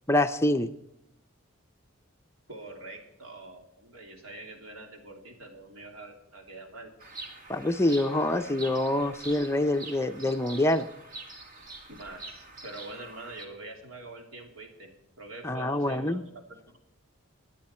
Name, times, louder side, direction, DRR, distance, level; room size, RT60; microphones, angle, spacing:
voice 1, 0.1-0.7 7.5-10.9 15.4-16.2, left 1 dB, 15° left, 8 dB, 0.5 m, -26 dB
voice 2, 2.5-6.9 11.9-14.9 15.2-16.8, right 2 dB, 80° right, 2 dB, 3.0 m, -45 dB
Bird vocalization bird call bird song, 7.0-13.5, right 2 dB, 40° right, 1.9 m, -45 dB
23.0 x 9.2 x 4.3 m, 0.78 s
head